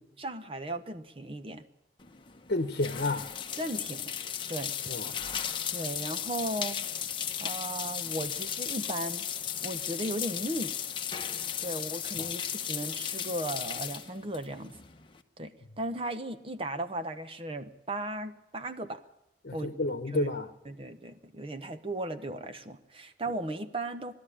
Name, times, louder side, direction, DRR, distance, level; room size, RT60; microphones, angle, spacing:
voice 1, 0.2-1.6 3.6-4.1 4.5-4.8 5.7-6.9 7.4-9.3 9.6-10.7 11.6-14.7 15.4-19.0 19.5-19.7 20.1-20.4 20.6-24.1, right 1 dB, 30° right, 1.0 m, -36 dB
sound 1, 2.0-15.2, left 8 dB, 30° left, 1.0 m, -36 dB
voice 2, 2.5-3.2 4.9-5.0 12.2-12.3 19.4-20.5, left 2 dB, 60° left, 1.1 m, -30 dB
21.0 x 13.0 x 10.0 m
head